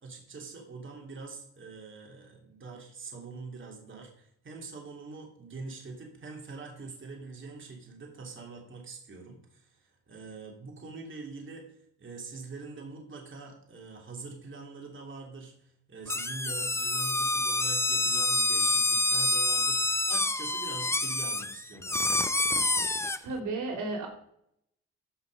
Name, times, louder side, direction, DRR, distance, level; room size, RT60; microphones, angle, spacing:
voice 1, 0.0-11.7 12.0-22.3, right 4 dB, 40° right, 1 dB, 3.2 m, -44 dB
sound 1, 16.1-23.2, left 2 dB, 10° left, 0.6 m, -27 dB
voice 2, 23.2-24.1, right 3 dB, 75° right, 1 dB, 3.3 m, -33 dB
14.5 x 5.7 x 5.3 m, 0.70 s
cardioid pair, 90°, 30 cm